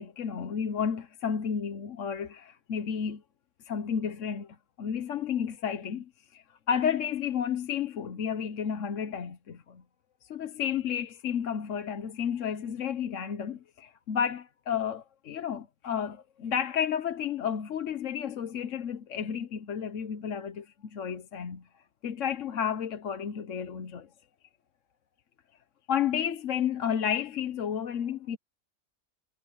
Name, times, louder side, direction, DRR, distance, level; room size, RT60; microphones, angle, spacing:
voice 1, 0.0-3.2 3.6-4.5 4.8-9.8 10.2-21.6 22.0-24.1 25.9-28.4, left 8 dB, 55° left, 1.2 m, -32 dB
omnidirectional pair, 1.7 m